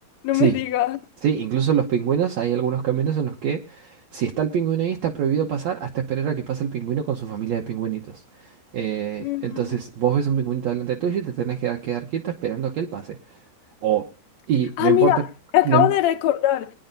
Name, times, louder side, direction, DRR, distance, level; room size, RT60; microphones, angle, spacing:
voice 1, 0.2-1.0 9.2-9.6 14.8-15.2 15.5-16.7, left 14 dB, 75° left, 1.6 m, -20 dB
voice 2, 1.2-13.2 13.8-14.1 14.5-15.2 15.7-15.9, right 9 dB, 65° right, 1.8 m, -24 dB
22.5 x 10.0 x 2.6 m
omnidirectional pair, 4.0 m